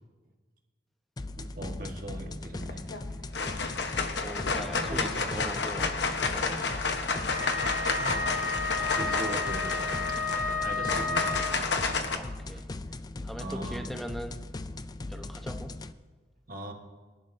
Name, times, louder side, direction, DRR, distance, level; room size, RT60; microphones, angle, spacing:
sound 1, 1.2-15.9, left 2 dB, 20° left, 0.3 m, -39 dB
voice 1, 1.4-2.8 4.9-5.3 8.0-8.1 8.8-10.0 10.3-11.5 11.8-12.0 12.5-12.6 13.4-13.8 16.5-16.7, right 1 dB, 50° right, 2 dB, 1.5 m, -39 dB
sound 2, 2.6-3.0 3.3-12.1, left 4 dB, 75° left, 1.1 m, -30 dB
voice 2, 4.2-7.0 10.6-10.7 12.1-12.7 13.2-14.4 15.1-15.7, equal, ahead, 4 dB, 0.9 m, -41 dB
Wind instrument woodwind instrument, 7.3-11.8, left 3 dB, 50° left, 1.3 m, -32 dB
22.5 x 11.0 x 2.7 m, 1.3 s
head